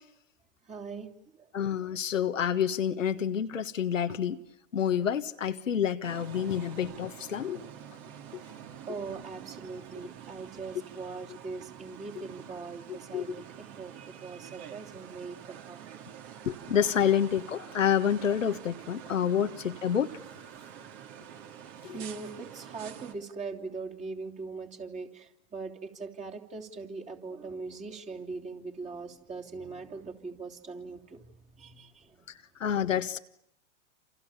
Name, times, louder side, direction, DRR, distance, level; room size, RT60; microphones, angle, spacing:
voice 1, 0.6-1.5 1.9-2.0 7.5-7.6 8.9-15.9 17.0-17.2 19.0-19.4 21.9-32.2, right 4 dB, 20° right, 3.2 m, -41 dB
voice 2, 1.5-4.4 4.7-7.6 13.1-13.4 16.4-20.1 32.6-33.2, left 8 dB, 85° left, 1.6 m, -28 dB
sound 1, 6.0-23.1, right 9 dB, 45° right, 3.1 m, -47 dB
28.5 x 28.0 x 7.3 m
hypercardioid pair, 110°, 38 cm